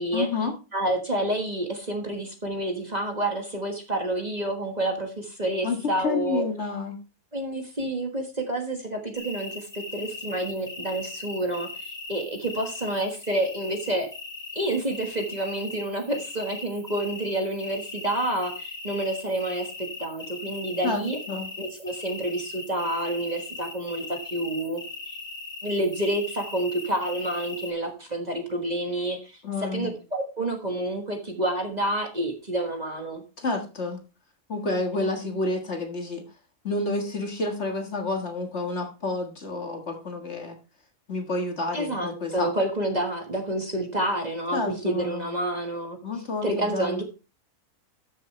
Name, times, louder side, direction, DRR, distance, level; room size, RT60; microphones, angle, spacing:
voice 1, 0.1-0.6 5.6-7.0 20.8-21.5 29.4-30.0 33.4-34.0 34.5-36.2 36.6-40.6 41.1-42.5 44.5-45.3 46.0-47.0, left 3 dB, 45° left, 4 dB, 1.9 m, -29 dB
voice 2, 0.7-6.5 7.3-14.1 14.5-21.2 21.6-25.2 25.6-29.4 29.7-33.2 41.7-46.0 46.4-47.0, right 1 dB, 30° right, 3 dB, 1.6 m, -29 dB
sound 1, 9.1-27.7, left 3 dB, 20° left, 1.9 m, -39 dB
13.0 x 6.9 x 3.2 m, 0.32 s
omnidirectional pair, 1.6 m